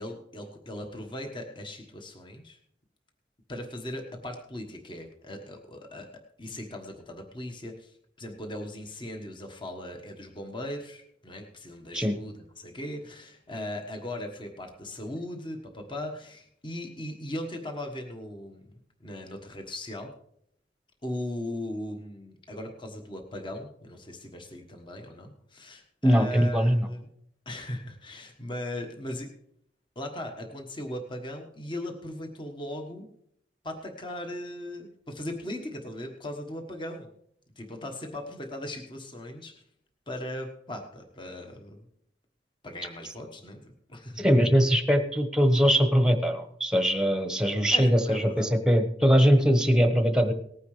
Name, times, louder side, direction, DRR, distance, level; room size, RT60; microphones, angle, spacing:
voice 1, 0.0-2.6 3.5-6.1 6.4-20.1 21.0-27.1 27.4-29.3 29.9-33.1 33.6-37.1 37.6-39.6 40.1-41.9 42.6-44.3 47.7-48.5, left 1 dB, 25° left, 4 dB, 1.3 m, -38 dB
voice 2, 26.0-26.9 44.2-50.3, equal, 5° right, 7 dB, 1.1 m, -22 dB
18.5 x 9.5 x 3.3 m, 0.69 s
head